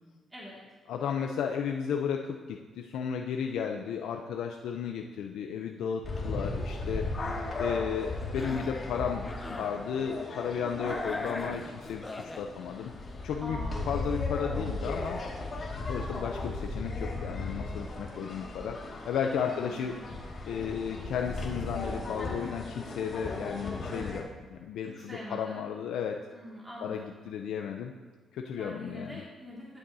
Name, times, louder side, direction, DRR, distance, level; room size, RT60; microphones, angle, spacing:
voice 1, 0.9-7.1 7.6-12.9 13.2-13.6 13.9-15.2 15.9-18.8 19.0-20.0 20.5-26.2 26.8-27.9 28.3-29.2, left 7 dB, 80° left, 3 dB, 0.5 m, -34 dB
sound 1, 6.0-24.2, left 2 dB, 40° left, 2.0 m, -36 dB
voice 2, 7.2-7.8 10.6-10.9 13.4-14.0 14.5-14.9 19.4-20.0 25.1-25.6 26.3-27.1 28.6-29.8, equal, 15° right, -6 dB, 2.2 m, -43 dB
Cough, 8.2-8.8 9.2-9.8 10.9-12.5, left 2 dB, 20° left, 0.7 m, -41 dB
11.0 x 8.9 x 2.7 m, 1.4 s
cardioid pair, 90°, 0 cm